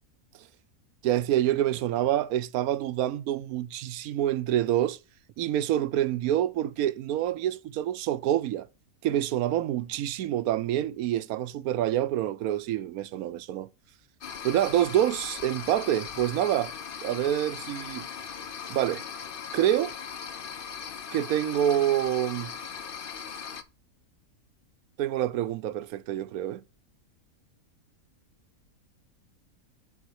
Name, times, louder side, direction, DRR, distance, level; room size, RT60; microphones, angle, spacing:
voice 1, 1.0-5.0 5.4-8.7 9.0-13.7 14.4-16.7 17.0-18.1 18.7-19.0 19.5-19.9 21.1-22.5 25.0-26.6, right 12 dB, 80° right, 1.1 m, -27 dB
sound 1, 14.2-23.6, left 7 dB, 50° left, 0.7 m, -39 dB
7.2 x 4.1 x 6.1 m
omnidirectional pair, 1.5 m